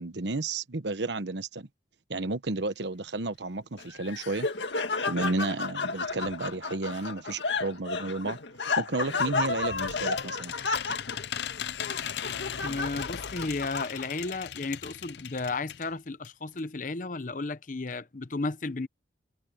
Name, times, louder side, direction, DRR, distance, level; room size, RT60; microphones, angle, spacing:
voice 1, 0.0-1.7 2.1-4.5 5.1-8.4 8.8-10.5, right 2 dB, 80° right, 1.2 m, -32 dB
Laughter, 3.8-14.3, left 4 dB, 85° left, 2.0 m, -32 dB
sound 1, 9.0-15.9 16.2-16.3 16.6-16.7, left 9 dB, 70° left, 0.5 m, -38 dB
voice 2, 12.6-18.9, left 3 dB, 45° left, 0.8 m, -33 dB
head